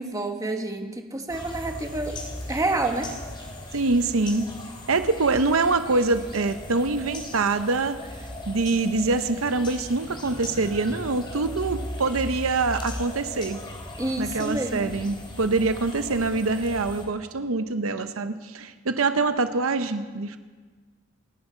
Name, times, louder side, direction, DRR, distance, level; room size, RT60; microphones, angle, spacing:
voice 1, 0.0-2.2 2.5-3.1 14.0-15.0, right 2 dB, 15° right, 4 dB, 1.3 m, -28 dB
sound 1, 1.3-17.1, left 1 dB, 25° left, 2.7 m, -38 dB
voice 2, 3.7-4.5 4.9-8.0 8.5-13.6 14.2-20.4, right 3 dB, 85° right, 10 dB, 0.8 m, -25 dB
28.5 x 10.5 x 4.4 m, 1.4 s
head